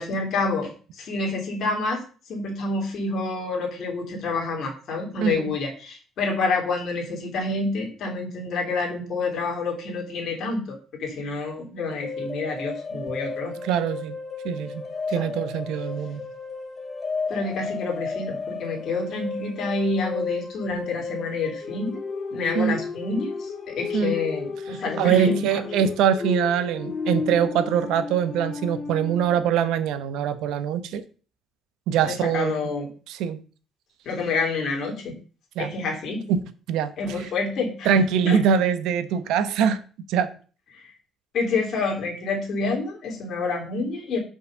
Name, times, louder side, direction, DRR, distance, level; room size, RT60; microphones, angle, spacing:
voice 1, 0.0-2.0 2.3-13.5 15.2-15.3 17.3-22.0 22.3-25.6 32.0-32.9 34.0-35.1 35.6-36.2 37.0-37.9 38.2-38.4 40.7-40.9 41.3-44.2, left 3 dB, 50° left, 3.0 m, -28 dB
voice 2, 5.2-5.5 13.6-14.1 14.4-16.2 22.5-22.8 23.9-24.2 24.7-31.0 31.9-32.7 33.1-33.4 35.6-35.7 36.3-36.4 36.7-36.9 37.8-39.8 40.1-40.3, right 8 dB, 80° right, 1.0 m, -23 dB
sound 1, 12.0-29.4, left 4 dB, 30° left, 1.9 m, -33 dB
5.7 x 5.5 x 6.5 m
cardioid pair, 135°, 0 cm